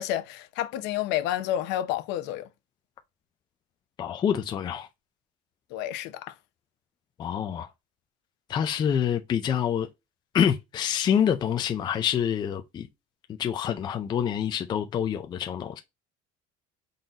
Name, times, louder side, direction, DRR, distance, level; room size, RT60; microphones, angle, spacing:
voice 1, 0.0-2.5 5.7-6.3, left 12 dB, 65° left, 0.7 m, -30 dB
voice 2, 4.0-4.9 7.2-7.7 8.5-9.9 10.3-12.9 13.4-15.8, left 8 dB, 25° left, 0.4 m, -26 dB
3.9 x 3.8 x 2.7 m
cardioid pair, 165°, 19 cm